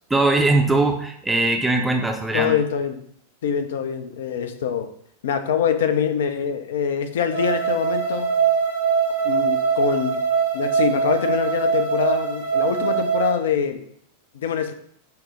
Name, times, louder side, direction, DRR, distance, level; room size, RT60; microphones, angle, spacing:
voice 1, 0.1-2.5, right 2 dB, 5° right, 3 dB, 0.5 m, -20 dB
voice 2, 2.3-3.0 3.4-4.9 5.2-8.4 9.2-10.2 10.5-13.8 14.3-14.7, left 7 dB, 60° left, 9 dB, 0.4 m, -24 dB
sound 1, 7.3-13.3, right 6 dB, 90° left, 0.9 m, -22 dB
5.6 x 2.0 x 3.0 m, 0.67 s
figure-of-eight pair, 90°, 0 cm